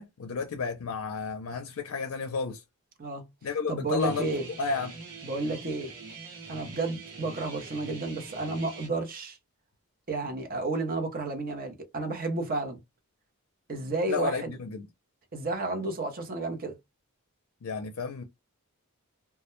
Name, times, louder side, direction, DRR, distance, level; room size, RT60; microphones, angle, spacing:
voice 1, 0.0-2.6 3.4-5.0 14.1-14.9 17.6-18.2, left 5 dB, 65° left, 0.4 m, -32 dB
voice 2, 3.7-4.5 5.2-5.9 6.5-9.4 10.1-12.8 13.7-14.6 15.3-16.8, right 3 dB, 40° right, 0.6 m, -31 dB
Guitar, 4.0-8.9, right 4 dB, 85° right, 0.8 m, -44 dB
2.2 x 2.1 x 3.0 m
head